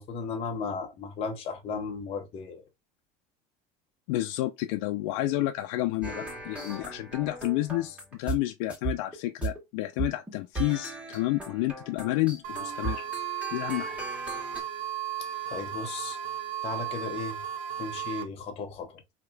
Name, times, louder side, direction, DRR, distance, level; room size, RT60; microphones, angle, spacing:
voice 1, 0.0-2.6 15.5-16.2 16.6-17.4 17.8-19.0, left 4 dB, 35° left, 1.0 m, -35 dB
voice 2, 4.1-13.0 13.5-14.0, left 17 dB, 85° left, 0.5 m, -30 dB
sound 1, 6.0-8.4 8.7-9.6 10.0-14.6, right 3 dB, 10° right, 1.6 m, -37 dB
sound 2, 12.4-18.2, right 10 dB, 55° right, 0.8 m, -35 dB
4.9 x 2.9 x 2.3 m
cardioid pair, 165°, 17 cm